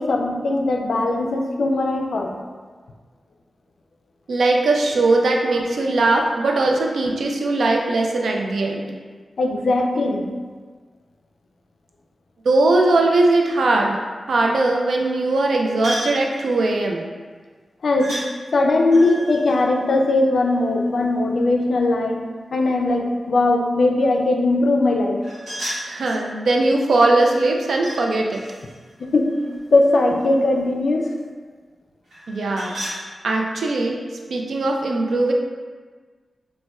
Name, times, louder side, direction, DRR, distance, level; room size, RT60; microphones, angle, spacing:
voice 1, 0.0-2.3 9.4-10.3 17.8-18.2 18.5-22.3 22.5-25.2 29.0-29.4 29.7-31.1, left 2 dB, 70° left, 2 dB, 0.3 m, -19 dB
voice 2, 4.3-9.0 12.5-14.0 14.3-17.0 25.8-28.4 32.3-32.8 33.2-34.0 34.3-35.3, right 2 dB, 85° right, 1 dB, 0.3 m, -20 dB
sound 1, 15.8-16.2 18.0-18.3 18.9-20.7 25.2-26.3 27.2-28.0 28.3-30.2 32.1-33.0, equal, 55° right, 1.0 m, -34 dB
4.0 x 2.1 x 2.2 m, 1.5 s
wide cardioid pair, 135°, 0 cm